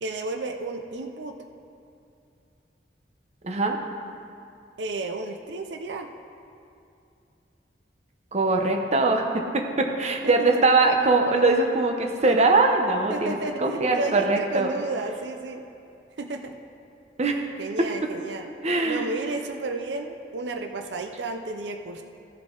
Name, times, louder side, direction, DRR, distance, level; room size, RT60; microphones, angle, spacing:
voice 1, 0.0-1.4 4.8-6.1 10.2-10.6 13.1-15.6 16.2-16.5 17.6-18.5 18.8-22.0, right 2 dB, 85° right, 5 dB, 0.6 m, -32 dB
voice 2, 3.4-3.8 8.3-14.7 17.2-17.4 17.8-17.9 18.6-19.1, right 3 dB, 40° right, 3 dB, 0.8 m, -22 dB
15.0 x 7.2 x 3.9 m, 2.6 s
head